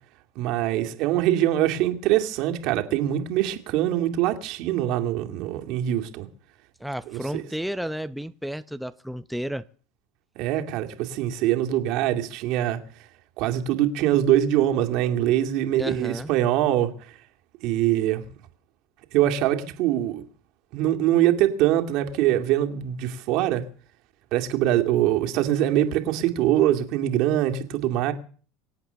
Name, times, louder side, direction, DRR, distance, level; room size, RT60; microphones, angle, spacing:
voice 1, 0.4-6.3 7.1-7.4 10.4-12.8 13.4-16.9 17.6-18.3 19.1-20.2 20.7-23.6 24.3-28.1, right 12 dB, 65° right, 2.4 m, -23 dB
voice 2, 6.8-9.7 15.8-16.3, equal, ahead, 0.7 m, -32 dB
25.0 x 8.4 x 6.9 m
supercardioid pair, 100°, 0 cm